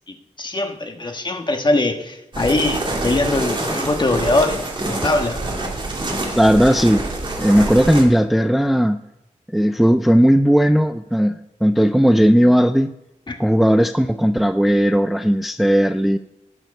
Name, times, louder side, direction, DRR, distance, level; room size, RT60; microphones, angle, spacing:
voice 1, 0.1-5.4 13.3-13.4, left 2 dB, 35° left, 4 dB, 1.5 m, -22 dB
sound 1, 2.3-8.0, right 2 dB, 35° right, 2.3 m, -26 dB
voice 2, 6.3-7.1 7.4-9.0 9.5-12.9 13.4-16.2, equal, ahead, 9 dB, 0.4 m, -16 dB
19.0 x 6.3 x 5.3 m, 0.91 s
wide cardioid pair, 135°, 13 cm